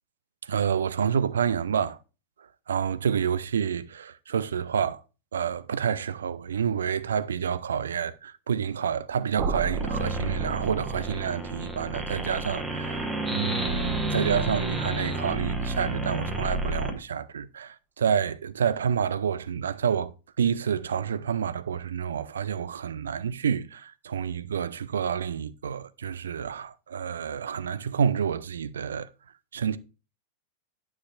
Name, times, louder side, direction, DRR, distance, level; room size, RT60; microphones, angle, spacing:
voice 1, 0.4-2.0 2.7-5.0 5.3-29.1 29.5-29.8, right 7 dB, 65° right, 0.4 m, -28 dB
sound 1, 9.4-15.3, right 5 dB, 35° right, 0.9 m, -38 dB
sound 2, 9.7-16.9, right 2 dB, 10° right, 1.1 m, -30 dB
9.4 x 6.0 x 2.4 m
figure-of-eight pair, 90°, 0 cm